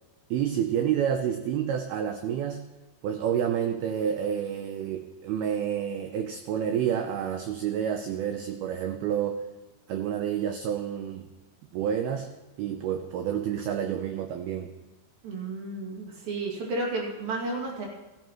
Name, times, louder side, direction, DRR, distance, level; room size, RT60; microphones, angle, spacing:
voice 1, 0.3-2.6 3.0-9.4 9.9-11.3 11.7-12.3 12.6-14.7, right 9 dB, 85° right, 6 dB, 2.2 m, -29 dB
voice 2, 15.2-17.9, right 2 dB, 55° right, -1 dB, 3.9 m, -32 dB
15.5 x 14.0 x 3.1 m, 1.1 s
omnidirectional pair, 5.3 m